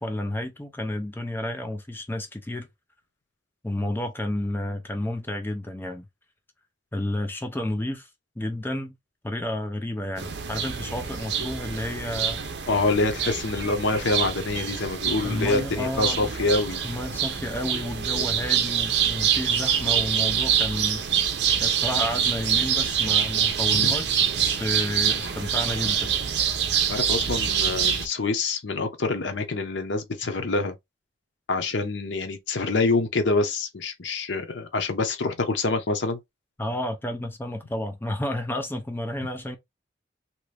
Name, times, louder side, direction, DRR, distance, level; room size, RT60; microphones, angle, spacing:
voice 1, 0.0-2.7 3.6-6.1 6.9-8.1 8.4-9.0 9.2-12.4 15.2-16.3 16.8-21.0 21.6-26.1 36.6-39.6, left 1 dB, 10° left, 0.4 m, -31 dB
sound 1, 10.2-28.1, right 8 dB, 60° right, 0.6 m, -25 dB
voice 2, 12.7-16.8 23.8-23.9 26.9-30.7 31.5-36.2, left 3 dB, 75° left, 0.7 m, -26 dB
3.0 x 2.5 x 3.2 m
head